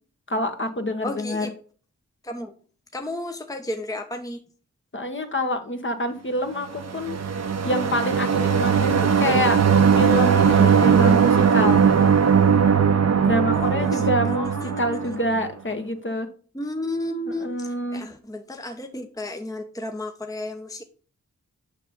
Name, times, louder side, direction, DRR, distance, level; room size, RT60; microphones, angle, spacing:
voice 1, 0.3-1.5 4.9-7.2 7.6-9.6 9.9-11.8 13.2-14.5 14.8-16.3 17.4-18.0, left 1 dB, 35° left, 6 dB, 1.4 m, -26 dB
voice 2, 1.0-1.5 2.2-2.5 2.9-4.4 13.5-15.2 16.5-20.8, left 1 dB, 10° left, 5 dB, 1.0 m, -33 dB
sound 1, 6.8-15.5, right 6 dB, 50° right, 1.0 m, -19 dB
6.5 x 5.5 x 5.2 m, 0.42 s
cardioid pair, 40°, 32 cm